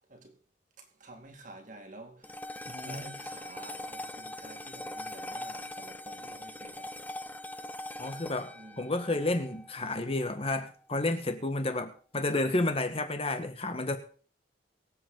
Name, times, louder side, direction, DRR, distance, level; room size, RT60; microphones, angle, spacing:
voice 1, 0.8-2.4 2.8-7.0 8.5-8.9, right 2 dB, 45° right, 2.2 m, -50 dB
sound 1, 2.2-10.7, left 1 dB, 10° left, 0.6 m, -42 dB
voice 2, 2.7-3.2 8.0-14.0, left 2 dB, 35° left, 1.6 m, -31 dB
23.5 x 8.0 x 4.0 m
head